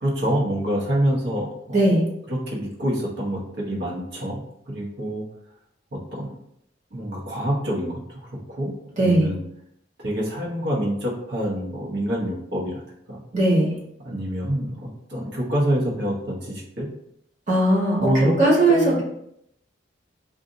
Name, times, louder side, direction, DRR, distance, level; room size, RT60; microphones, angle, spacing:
voice 1, 0.0-1.9 2.3-4.4 4.7-5.2 5.9-6.4 6.9-8.2 8.5-9.4 10.0-12.8 13.1-13.2 14.0-16.9 18.0-19.0, equal, 65° right, -4 dB, 1.1 m, -26 dB
voice 2, 1.7-2.0 9.0-9.3 13.3-13.7 17.5-18.0 18.4-19.0, right 1 dB, 40° right, -4 dB, 1.2 m, -18 dB
2.7 x 2.5 x 3.7 m, 0.75 s
head